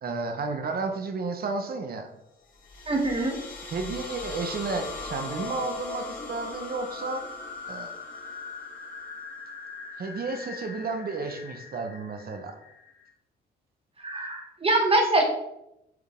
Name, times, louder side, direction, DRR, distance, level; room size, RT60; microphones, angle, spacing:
voice 1, 0.0-2.1 3.6-7.3 7.7-8.0 10.0-12.6, right 3 dB, 50° right, 6 dB, 1.1 m, -32 dB
sound 1, 2.5-13.1, left 3 dB, 40° left, 2.0 m, -39 dB
voice 2, 2.9-3.4 14.0-15.2, right 2 dB, 30° right, 2 dB, 1.3 m, -23 dB
7.9 x 3.9 x 3.8 m, 0.84 s
cardioid pair, 90°, 20 cm